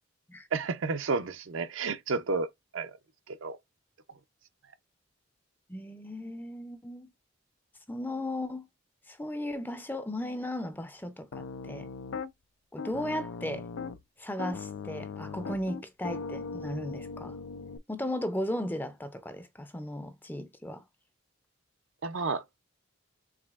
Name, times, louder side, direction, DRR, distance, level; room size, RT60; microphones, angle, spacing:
voice 1, 0.5-3.0 3.3-3.6 22.0-22.4, right 4 dB, 70° right, 0.6 m, -31 dB
voice 2, 5.7-7.1 7.9-8.7 9.1-11.9 12.7-13.7 14.2-17.4 17.9-20.8, left 1 dB, 10° left, 0.5 m, -36 dB
Piano, 11.3-12.3 12.8-14.0 14.4-17.8, left 4 dB, 80° left, 0.4 m, -39 dB
4.8 x 3.3 x 2.4 m
head